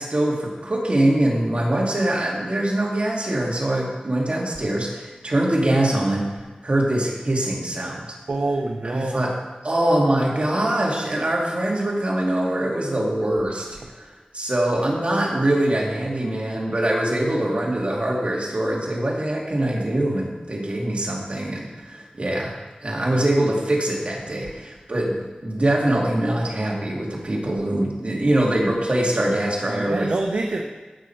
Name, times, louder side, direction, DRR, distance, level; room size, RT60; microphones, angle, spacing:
voice 1, 0.0-8.2 8.8-14.1 14.3-22.6 22.8-30.2, right 1 dB, 45° right, -2 dB, 2.5 m, -23 dB
voice 2, 8.3-9.2 29.7-30.6, right 2 dB, 65° right, 2 dB, 0.9 m, -26 dB
15.0 x 6.4 x 4.6 m, 1.3 s
wide cardioid pair, 70°, 3 cm